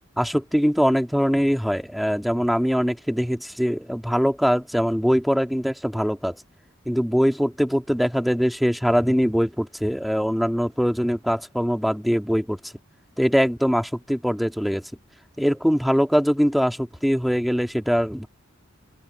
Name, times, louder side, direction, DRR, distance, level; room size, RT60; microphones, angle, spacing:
voice 1, 0.2-6.4 6.9-12.7 13.2-14.8 15.4-18.3, equal, ahead, 1.9 m, -22 dB
open air
head